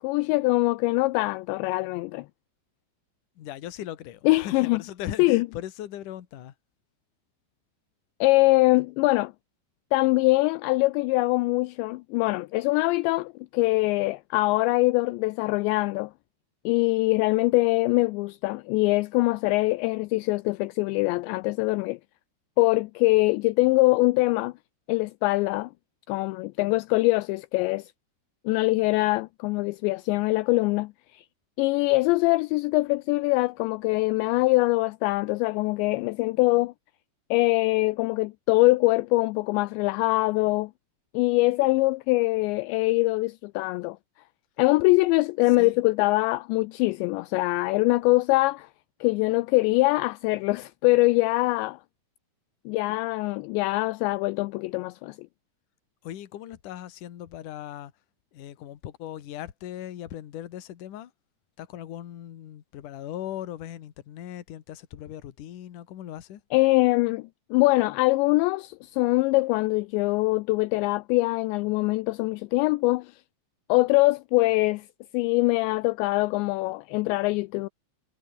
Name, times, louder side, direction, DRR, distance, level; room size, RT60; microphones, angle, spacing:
voice 1, 0.0-2.3 4.3-4.8 5.2-5.5 8.2-9.3 9.9-16.1 16.7-22.0 22.6-24.5 24.9-25.7 26.1-27.9 28.5-31.3 31.6-36.7 37.3-40.7 41.1-44.0 44.6-48.7 49.0-51.8 52.7-55.3 66.5-73.2 73.7-74.9 75.1-77.7, left 22 dB, 80° left, 2.7 m, -23 dB
voice 2, 3.4-6.5 45.6-45.8 56.0-57.9 58.3-61.1 61.6-66.4, left 12 dB, 55° left, 2.7 m, -39 dB
omnidirectional pair, 5.4 m